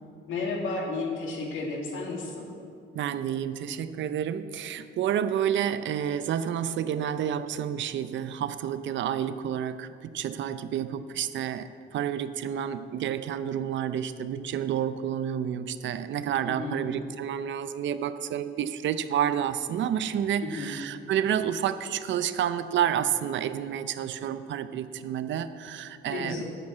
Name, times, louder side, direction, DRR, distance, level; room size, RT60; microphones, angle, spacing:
voice 1, 0.3-2.4 16.5-16.8 20.4-20.8 26.1-26.4, left 3 dB, 80° left, 0 dB, 2.3 m, -32 dB
voice 2, 2.9-26.4, right 9 dB, 70° right, 12 dB, 0.6 m, -29 dB
9.1 x 7.4 x 8.3 m, 2.5 s
cardioid pair, 90°, 20 cm